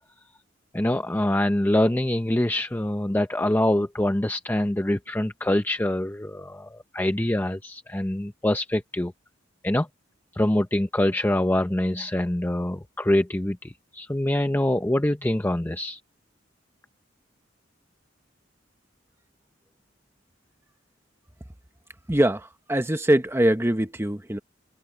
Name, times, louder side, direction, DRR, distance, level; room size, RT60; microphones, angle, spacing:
voice 1, 0.7-9.1 9.6-9.9 10.3-16.0, left 1 dB, 10° left, 0.6 m, -24 dB
voice 2, 22.1-24.4, right 1 dB, 15° right, 1.1 m, -23 dB
head